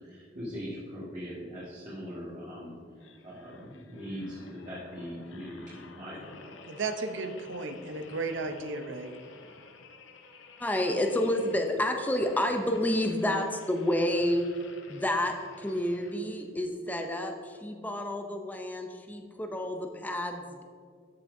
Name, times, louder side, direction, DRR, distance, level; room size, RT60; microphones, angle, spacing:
voice 1, 0.0-2.8 3.2-6.6, equal, 40° right, -9 dB, 1.8 m, -41 dB
sound 1, 3.0-16.5 17.1-17.3, left 4 dB, 75° left, 0.7 m, -53 dB
voice 2, 6.7-9.2, right 3 dB, 65° right, 6 dB, 0.7 m, -34 dB
voice 3, 10.6-14.5 14.9-20.6, left 1 dB, 10° left, 4 dB, 0.5 m, -29 dB
13.0 x 5.8 x 2.7 m, 2.1 s
head